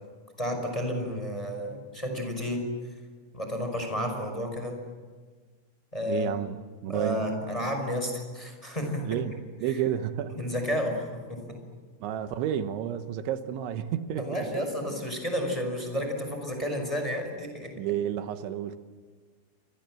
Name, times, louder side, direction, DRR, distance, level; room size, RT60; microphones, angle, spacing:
voice 1, 0.4-2.6 3.3-4.8 5.9-6.3 6.9-9.2 10.3-11.6 14.2-17.7, equal, 5° left, 5.2 m, -31 dB
voice 2, 6.1-6.6 6.8-7.2 9.0-10.4 12.0-14.7 17.8-18.8, right 10 dB, 85° right, 3.5 m, -31 dB
29.0 x 25.5 x 7.7 m
omnidirectional pair, 5.2 m